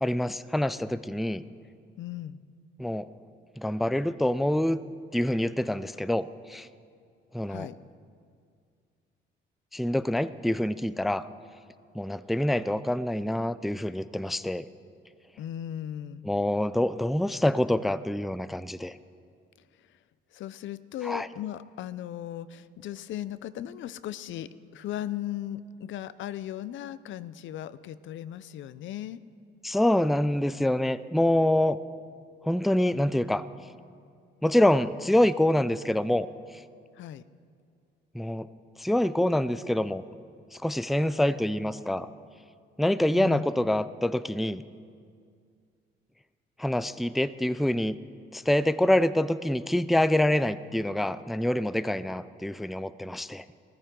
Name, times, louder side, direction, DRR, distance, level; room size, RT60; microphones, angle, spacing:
voice 1, 0.0-1.4 2.8-3.1 3.6-4.8 5.1-6.7 7.3-7.7 9.7-11.3 11.9-14.7 16.2-19.0 21.0-21.3 29.6-31.8 32.4-33.5 34.4-36.3 38.1-38.5 38.8-40.0 40.5-42.1 42.8-44.6 46.6-48.0 48.3-53.4, left 1 dB, ahead, 14 dB, 0.3 m, -26 dB
voice 2, 2.0-2.4 7.5-7.8 15.4-16.2 19.8-20.0 20.3-29.2 36.9-37.2 43.2-43.5, left 11 dB, 75° left, 15 dB, 0.5 m, -37 dB
17.0 x 14.5 x 3.8 m, 2.2 s
cardioid pair, 90°, 20 cm